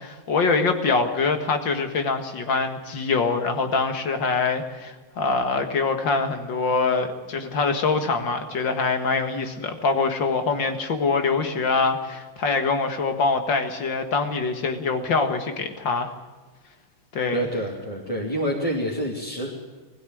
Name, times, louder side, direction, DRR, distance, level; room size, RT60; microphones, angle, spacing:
voice 1, 0.0-16.1 17.1-17.5, left 4 dB, 60° left, 6 dB, 2.5 m, -24 dB
voice 2, 17.3-19.5, right 1 dB, 15° left, -4 dB, 2.8 m, -27 dB
20.5 x 16.0 x 9.3 m, 1.3 s
omnidirectional pair, 2.3 m